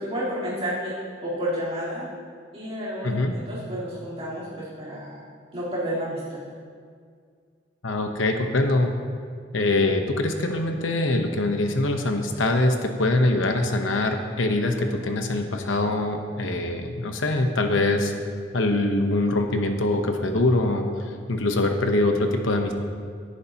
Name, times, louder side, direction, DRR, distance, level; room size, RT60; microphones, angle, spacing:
voice 1, 0.0-2.0 2.5-5.3 5.5-6.4, equal, 30° right, -11 dB, 3.7 m, -31 dB
voice 2, 7.8-8.9 9.5-18.1 18.5-20.9 21.3-22.7, left 2 dB, 85° left, 4 dB, 1.0 m, -23 dB
17.5 x 11.0 x 2.9 m, 2.1 s
head